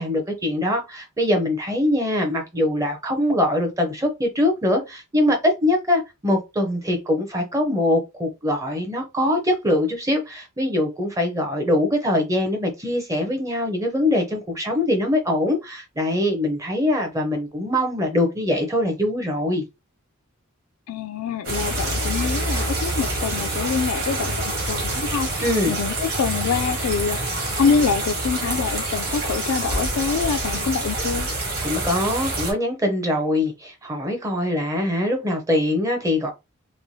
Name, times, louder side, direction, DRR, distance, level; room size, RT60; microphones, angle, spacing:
voice 1, 0.0-19.6 25.4-25.7 31.6-36.3, left 1 dB, 15° right, 0.5 m, -23 dB
voice 2, 20.9-25.3 25.7-27.2 27.5-31.3, left 6 dB, 80° left, 0.3 m, -25 dB
sound 1, 21.4-32.5, right 2 dB, 40° right, 1.2 m, -26 dB
3.0 x 2.2 x 2.6 m
head